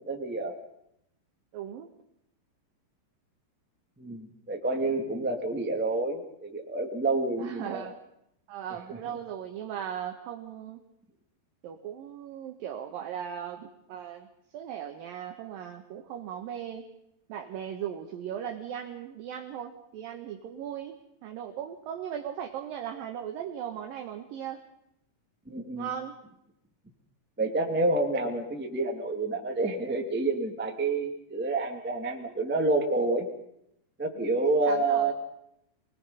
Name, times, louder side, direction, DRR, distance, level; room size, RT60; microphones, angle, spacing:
voice 1, 0.0-0.5 4.0-7.9 25.5-25.9 27.4-33.3 34.0-35.1, right 2 dB, 5° right, 2 dB, 0.8 m, -28 dB
voice 2, 1.5-1.9 7.4-8.0 8.5-10.8 11.6-14.3 14.5-16.9 17.3-24.6 25.8-26.2 34.1-35.1, right 9 dB, 65° right, 4 dB, 2.6 m, -38 dB
24.5 x 20.5 x 5.6 m, 0.78 s
omnidirectional pair, 4.8 m